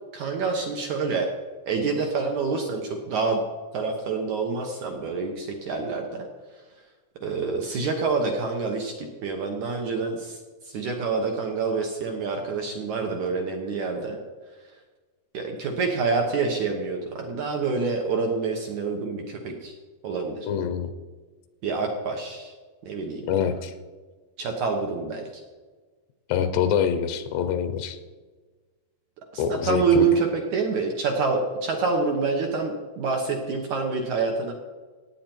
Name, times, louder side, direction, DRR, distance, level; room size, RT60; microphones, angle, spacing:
voice 1, 0.1-1.3 1.7-3.4 3.7-6.3 7.2-10.4 10.6-14.2 15.3-19.7 20.0-20.5 21.6-22.5 22.8-23.3 24.4-25.3 29.3-34.5, right 4 dB, 70° right, 2 dB, 1.8 m, -27 dB
voice 2, 20.5-20.9 23.3-23.7 26.3-28.0 29.4-30.1, left 8 dB, 80° left, 9 dB, 2.8 m, -25 dB
17.0 x 9.2 x 4.5 m, 1.4 s
omnidirectional pair, 4.9 m